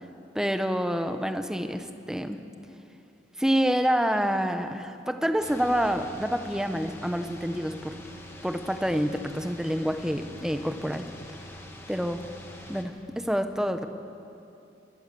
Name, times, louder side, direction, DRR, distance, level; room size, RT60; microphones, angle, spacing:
voice 1, 0.3-2.4 3.4-8.0 8.4-11.1 11.9-12.2 12.7-13.8, equal, 5° right, 8 dB, 0.9 m, -27 dB
sound 1, 5.4-12.8, left 1 dB, 15° left, 1.7 m, -45 dB
20.5 x 20.5 x 6.9 m, 2.7 s
head